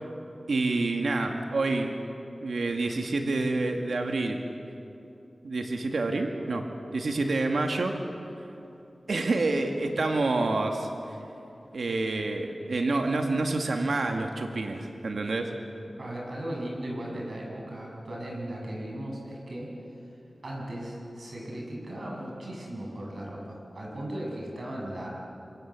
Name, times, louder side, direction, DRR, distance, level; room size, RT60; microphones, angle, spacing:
voice 1, 0.5-1.9 2.4-4.4 5.4-6.7 6.9-8.0 9.1-11.2 11.7-15.5, right 2 dB, 85° right, 3 dB, 2.0 m, -28 dB
voice 2, 16.0-19.7 20.4-25.1, right 1 dB, 65° right, -2 dB, 7.6 m, -37 dB
26.5 x 24.5 x 7.5 m, 2.8 s
wide cardioid pair, 75°, 0 cm